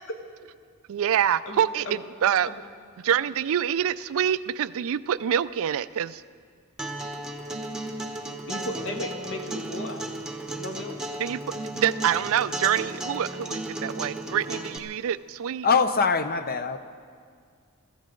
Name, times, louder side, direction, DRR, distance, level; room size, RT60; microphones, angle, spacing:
voice 1, 0.9-2.5 3.0-6.2 11.2-11.4 11.7-15.7, right 9 dB, 65° right, 16 dB, 0.4 m, -26 dB
voice 2, 1.4-2.0 2.5-2.6 8.5-10.0 10.6-10.9, left 1 dB, 60° left, 3 dB, 1.6 m, -35 dB
Acoustic guitar, 6.8-14.8, right 1 dB, 5° right, 1.0 m, -34 dB
voice 3, 15.6-16.8, left 5 dB, 45° left, 10 dB, 0.8 m, -22 dB
23.5 x 14.5 x 3.9 m, 2.1 s
head